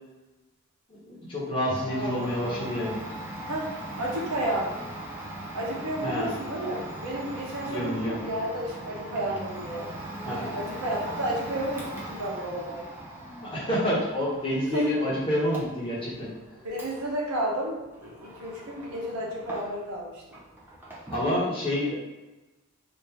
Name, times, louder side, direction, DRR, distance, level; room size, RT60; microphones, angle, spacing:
voice 1, 0.9-3.0 6.0-6.3 7.6-8.2 10.2-10.5 13.4-16.3 21.1-22.0, left 1 dB, 25° left, -7 dB, 1.0 m, -28 dB
Domestic sounds home sounds, 1.7-20.0 20.3-21.4, right 1 dB, 10° right, 0.4 m, -40 dB
voice 2, 1.9-2.2 3.5-3.7 4.0-4.7 5.5-9.9 10.5-12.8 14.7-14.9 16.6-20.2, right 1 dB, 85° right, -3 dB, 0.9 m, -32 dB
3.5 x 2.5 x 2.9 m, 1.1 s
head